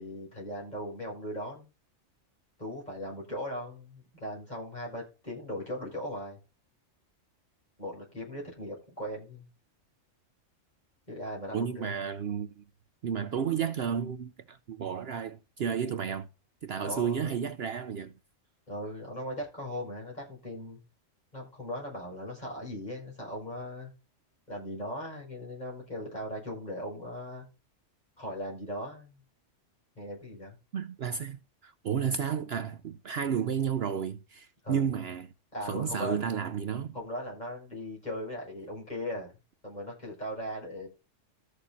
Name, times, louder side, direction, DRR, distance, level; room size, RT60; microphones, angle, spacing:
voice 1, 0.0-1.7 2.6-6.4 7.8-9.5 11.1-11.9 16.8-17.3 18.7-20.8 21.3-23.9 24.5-27.4 28.2-29.2 29.9-30.5 34.6-34.9 35.5-36.2 36.9-39.3 39.6-40.9, equal, 35° left, 6.8 m, -38 dB
voice 2, 11.5-12.6 13.0-16.3 16.6-18.1 30.7-35.3 35.6-36.9, right 7 dB, 60° right, 0.8 m, -32 dB
14.0 x 6.7 x 4.0 m
omnidirectional pair, 1.3 m